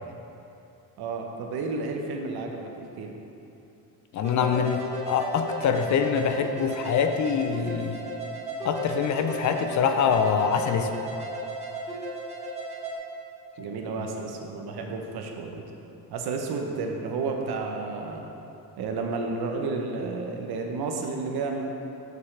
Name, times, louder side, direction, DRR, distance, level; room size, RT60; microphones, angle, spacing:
voice 1, 1.0-2.7 3.0-3.1 13.6-15.6 16.1-18.2 18.8-21.6, right 4 dB, 75° right, 2 dB, 0.9 m, -31 dB
voice 2, 4.1-8.0 8.6-10.9, left 7 dB, 50° left, 6 dB, 0.4 m, -25 dB
sound 1, 4.2-12.9, right 1 dB, 15° right, 1.1 m, -34 dB
7.0 x 6.5 x 3.3 m, 2.8 s
cardioid pair, 155°, 39 cm